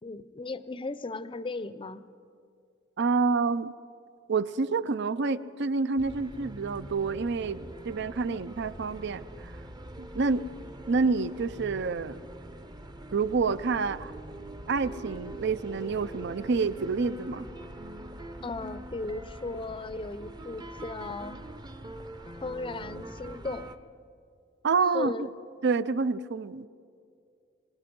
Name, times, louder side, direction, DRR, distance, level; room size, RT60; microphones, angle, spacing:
voice 1, 0.0-2.1 18.4-21.4 22.4-23.7 24.9-25.3, left 3 dB, 25° left, 14 dB, 0.6 m, -36 dB
voice 2, 3.0-3.7 4.3-9.5 10.0-10.5 10.9-12.2 13.1-14.1 14.7-17.5 24.6-25.3 25.6-26.7, right 4 dB, 60° right, 16 dB, 0.5 m, -28 dB
sound 1, 6.0-23.8, right 1 dB, 20° right, 0.7 m, -43 dB
26.5 x 19.0 x 5.3 m, 2.4 s
head